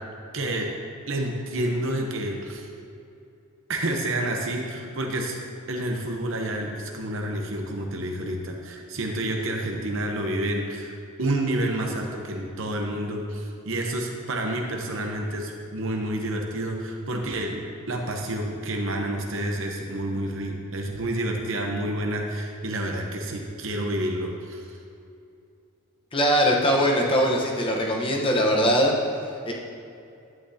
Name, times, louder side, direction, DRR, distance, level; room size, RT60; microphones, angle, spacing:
voice 1, 0.3-0.7 1.1-2.7 3.7-5.4 5.7-10.9 11.2-24.7, right 1 dB, 60° right, 1 dB, 0.9 m, -29 dB
voice 2, 26.1-28.9 29.4-29.5, equal, 25° left, -1 dB, 1.0 m, -21 dB
11.0 x 8.5 x 2.8 m, 2.6 s
head